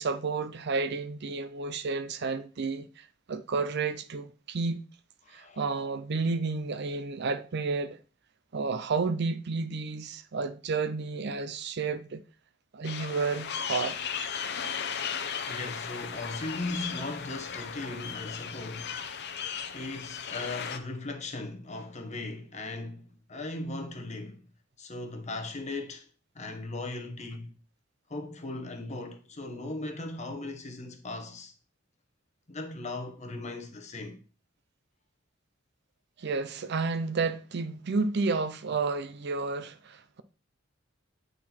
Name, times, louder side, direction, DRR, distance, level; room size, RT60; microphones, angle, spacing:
voice 1, 0.0-4.8 5.3-8.0 8.5-12.2 12.7-14.0 36.2-40.2, right 4 dB, 55° right, 0.6 m, -31 dB
voice 2, 5.2-5.6 15.5-19.0 19.7-24.5 24.8-26.1 26.3-27.6 28.1-31.5 32.5-34.2, left 2 dB, 35° left, 1.0 m, -38 dB
sound 1, 12.8-20.8, left 7 dB, 55° left, 0.7 m, -36 dB
8.6 x 4.0 x 4.3 m
head